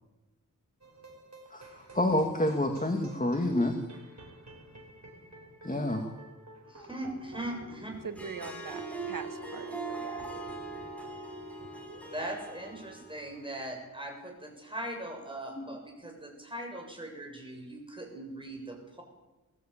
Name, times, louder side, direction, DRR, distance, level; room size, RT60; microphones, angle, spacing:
sound 1, 0.8-12.3, left 1 dB, 55° right, 5.4 m, -50 dB
voice 1, 1.5-3.8 5.6-6.1 15.6-15.7, left 1 dB, 25° left, 4 dB, 2.1 m, -28 dB
voice 2, 6.6-7.9 12.1-19.0, right 1 dB, 15° right, 2 dB, 7.0 m, -40 dB
Harp, 8.0-13.5, right 4 dB, 5° left, 5.2 m, -41 dB
voice 3, 8.0-10.3, right 5 dB, 85° right, 9 dB, 1.6 m, -42 dB
21.0 x 14.0 x 8.8 m, 1.1 s
wide cardioid pair, 55°, 33 cm